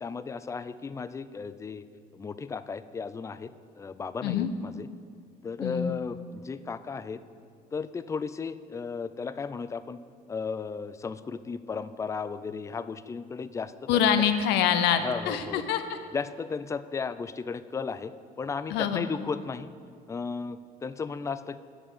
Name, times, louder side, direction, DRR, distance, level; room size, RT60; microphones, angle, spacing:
voice 1, 0.0-1.8 2.1-4.9 5.4-7.2 7.7-10.0 10.3-14.0 15.0-15.6 16.1-19.7 20.1-21.6, left 5 dB, 20° left, 14 dB, 0.3 m, -35 dB
voice 2, 5.6-6.0 13.9-15.8 18.7-19.0, left 9 dB, 90° left, 9 dB, 0.6 m, -25 dB
7.3 x 7.0 x 7.1 m, 2.3 s
cardioid pair, 110°, 17 cm